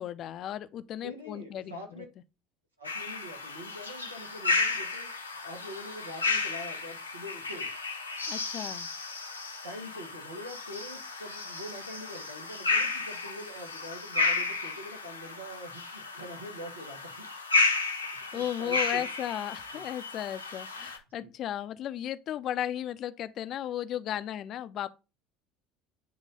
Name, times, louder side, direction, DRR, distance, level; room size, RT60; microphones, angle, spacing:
voice 1, 0.0-2.1 8.3-8.9 18.3-24.9, left 11 dB, 45° left, 0.6 m, -35 dB
voice 2, 1.0-2.1 2.8-5.1 5.4-7.7 9.6-17.3 18.3-19.0 19.7-19.9 21.2-21.3, equal, 85° right, 1.8 m, -44 dB
sound 1, 2.8-21.0, left 3 dB, 85° left, 1.0 m, -33 dB
8.5 x 3.2 x 5.4 m
figure-of-eight pair, 65°, 0 cm